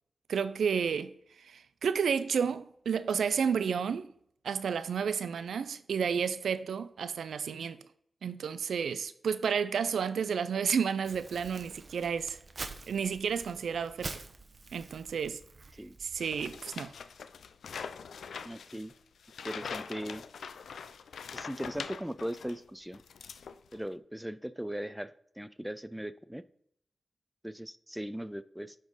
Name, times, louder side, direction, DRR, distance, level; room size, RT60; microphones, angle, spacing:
voice 1, 0.3-4.1 4.4-7.8 8.2-12.4 12.9-14.1 14.7-15.4 16.0-16.9, right 6 dB, 90° right, 0.3 m, -31 dB
Crumpling crinkling, 11.0-16.6, right 3 dB, 60° right, 0.7 m, -46 dB
sound 1, 16.2-22.6 22.9-23.9, left 6 dB, 90° left, 0.3 m, -43 dB
voice 2, 18.4-18.9 19.4-20.2 21.3-23.0 23.7-26.4 27.4-28.7, equal, 5° right, 0.4 m, -39 dB
10.5 x 3.7 x 4.0 m
cardioid pair, 45°, 0 cm